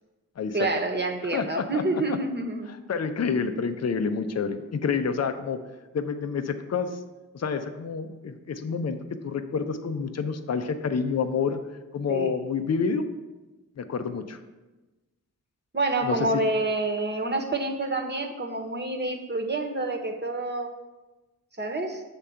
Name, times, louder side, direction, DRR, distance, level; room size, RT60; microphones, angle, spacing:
voice 1, 0.5-2.8 12.1-12.3 15.7-20.7 21.6-22.0, right 2 dB, 30° right, 3 dB, 1.1 m, -28 dB
voice 2, 1.3-2.2 2.9-5.6 5.9-7.0 7.3-9.0 9.2-11.6 11.9-13.1 13.8-14.4 16.0-16.2, left 5 dB, 45° left, 8 dB, 0.7 m, -28 dB
7.2 x 3.6 x 5.6 m, 1.1 s
cardioid pair, 40°, 36 cm